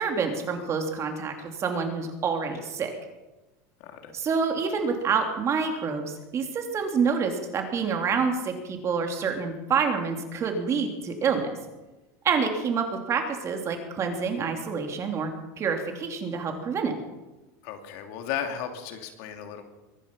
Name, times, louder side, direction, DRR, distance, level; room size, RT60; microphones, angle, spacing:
voice 1, 0.0-2.9 4.1-11.6 12.2-15.3 15.6-17.0, right 5 dB, 35° right, 4 dB, 3.2 m, -27 dB
voice 2, 3.8-4.1 17.6-19.6, left 9 dB, 70° left, 5 dB, 2.9 m, -35 dB
23.0 x 11.0 x 5.6 m, 1.1 s
supercardioid pair, 120°, 9 cm